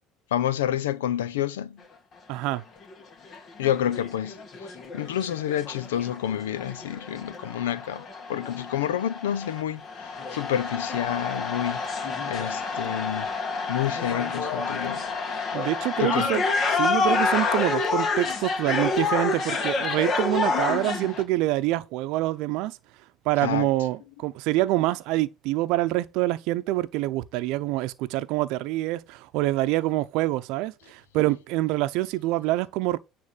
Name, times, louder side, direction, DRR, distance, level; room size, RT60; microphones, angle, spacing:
voice 1, 0.3-1.8 3.6-8.0 8.3-13.3 13.7-15.1 16.0-16.3 23.4-23.7, left 11 dB, 90° left, 0.6 m, -29 dB
voice 2, 2.3-2.6 15.5-16.4 16.7-22.8 23.2-33.0, right 17 dB, 70° right, 0.7 m, -26 dB
sound 1, 2.5-2.6 2.9-3.0 3.3-21.2, left 4 dB, 50° left, 2.1 m, -28 dB
9.7 x 3.4 x 6.9 m
hypercardioid pair, 75°, 0 cm